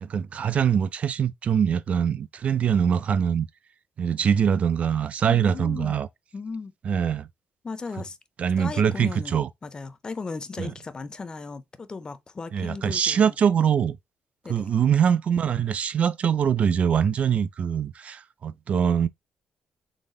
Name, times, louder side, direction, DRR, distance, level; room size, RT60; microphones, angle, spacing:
voice 1, 0.0-3.5 4.0-6.1 6.9-7.3 8.4-9.5 10.6-10.7 12.5-14.0 14.5-19.1, right 8 dB, 45° right, 0.4 m, -23 dB
voice 2, 5.3-6.0 6.3-6.7 7.6-8.2 8.6-13.4 14.4-14.7, left 4 dB, 25° left, 0.4 m, -36 dB
4.0 x 3.5 x 3.7 m
cardioid pair, 135°, 3 cm